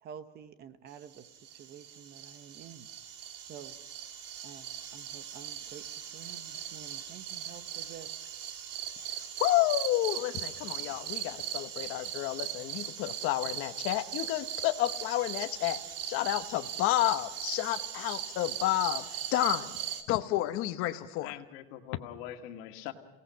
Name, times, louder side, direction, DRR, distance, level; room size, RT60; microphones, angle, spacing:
voice 1, 0.0-2.9 3.4-3.8 4.4-8.1, right 8 dB, 35° right, 11 dB, 0.9 m, -49 dB
sound 1, 1.1-20.0, right 10 dB, 55° right, 2.2 m, -39 dB
voice 2, 9.1-19.8 20.1-21.3, left 15 dB, 50° left, 9 dB, 1.0 m, -30 dB
voice 3, 21.2-22.9, left 12 dB, 75° left, 5 dB, 2.1 m, -43 dB
27.5 x 18.0 x 5.7 m, 1.0 s
cardioid pair, 170°, 29 cm